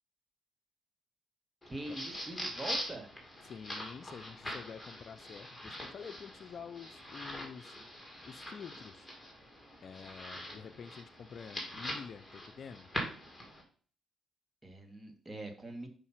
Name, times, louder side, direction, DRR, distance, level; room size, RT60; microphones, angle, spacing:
sound 1, 1.6-13.6, equal, 10° left, 2.5 m, -43 dB
voice 1, 1.7-3.1 14.6-15.9, right 2 dB, 20° right, 6 dB, 1.5 m, -43 dB
voice 2, 3.5-9.1 9.8-12.9, left 6 dB, 50° left, 11 dB, 0.5 m, -48 dB
5.6 x 5.2 x 5.7 m, 0.43 s
cardioid pair, 90°, 0 cm